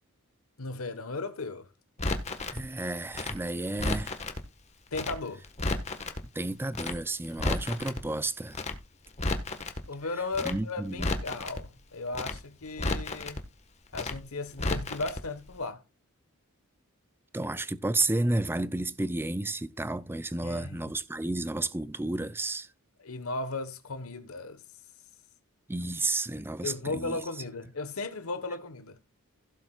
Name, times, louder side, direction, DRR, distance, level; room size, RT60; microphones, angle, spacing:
voice 1, 0.6-1.7 4.9-5.4 9.9-13.5 13.9-15.8 20.4-20.9 23.0-24.6 26.6-29.0, left 3 dB, 70° left, 1.3 m, -36 dB
Crackle, 2.0-2.6 3.1-4.4 4.9-5.2 5.4-6.2 6.7-7.0 7.2-8.0 8.5-8.8 9.1-9.8 10.3-10.6 10.9-11.6 12.1-12.4 12.7-13.4 13.9-14.2 14.5-15.2 15.5-15.6, left 2 dB, 30° left, 1.4 m, -32 dB
voice 2, 2.5-4.2 6.2-8.6 10.4-11.1 17.3-22.7 25.7-27.2, right 2 dB, 10° right, 0.5 m, -31 dB
16.0 x 7.6 x 2.4 m
head